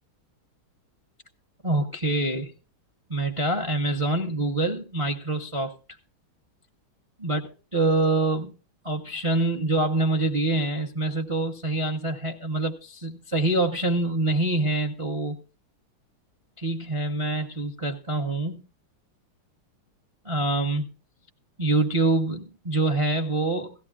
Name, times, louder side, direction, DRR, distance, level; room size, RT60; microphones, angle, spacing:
voice 1, 1.6-2.5 3.1-5.7 7.2-7.4 7.7-8.5 8.8-15.4 16.6-18.6 20.2-20.9 21.6-23.7, right 2 dB, 35° right, 6 dB, 0.5 m, -25 dB
17.0 x 15.0 x 2.3 m, 0.32 s
omnidirectional pair, 2.2 m